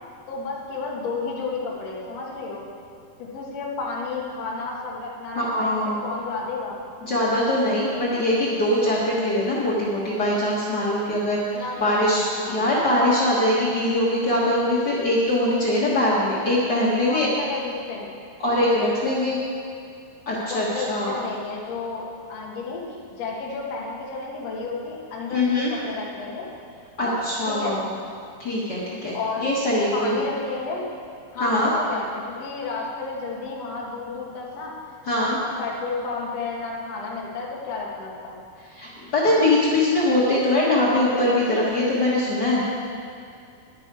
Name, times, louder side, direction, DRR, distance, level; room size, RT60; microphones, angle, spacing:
voice 1, 0.3-2.7 3.2-6.8 11.5-12.8 17.0-18.1 20.5-26.5 27.0-27.8 29.1-29.5 29.9-30.9 31.3-34.8 35.1-35.3 35.6-38.3, left 4 dB, 50° left, -3 dB, 2.3 m, -32 dB
voice 2, 5.3-6.0 7.0-17.3 18.4-19.4 20.3-21.2 25.3-25.7 27.0-27.9 28.4-30.2 31.4-31.7 35.1-35.4 38.7-42.6, left 1 dB, 85° left, -7 dB, 0.9 m, -22 dB
11.0 x 10.5 x 4.8 m, 2.4 s
omnidirectional pair, 4.5 m